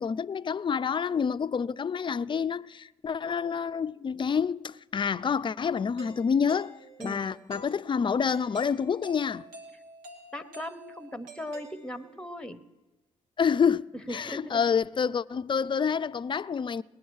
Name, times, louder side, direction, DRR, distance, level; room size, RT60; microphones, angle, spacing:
voice 1, 0.0-9.4 13.4-13.8 14.1-16.8, left 6 dB, 35° left, 0.5 m, -28 dB
Doorbell, 6.0-12.3, right 2 dB, 85° right, 1.7 m, -49 dB
voice 2, 10.3-12.6 13.9-14.7, left 1 dB, 5° left, 1.1 m, -39 dB
19.5 x 9.4 x 6.4 m
hypercardioid pair, 50°, 15 cm